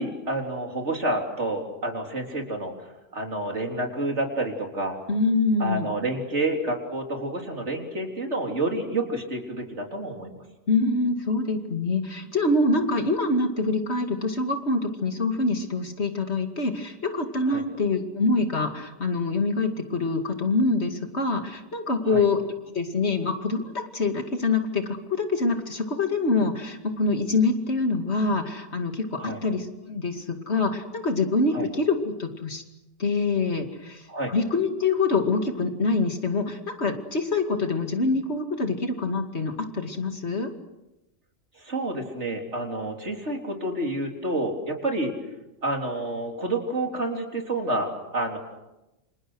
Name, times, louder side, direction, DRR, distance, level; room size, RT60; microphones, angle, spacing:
voice 1, 0.0-5.0 5.6-10.4 17.5-17.6 22.0-22.2 29.2-29.4 31.5-31.7 34.1-34.3 41.6-45.1 45.6-48.4, right 2 dB, 60° right, 2 dB, 4.1 m, -29 dB
voice 2, 5.1-5.9 10.7-22.4 22.7-32.6 33.0-40.5, left 3 dB, 55° left, 5 dB, 2.7 m, -25 dB
29.0 x 27.0 x 6.4 m, 0.96 s
omnidirectional pair, 1.4 m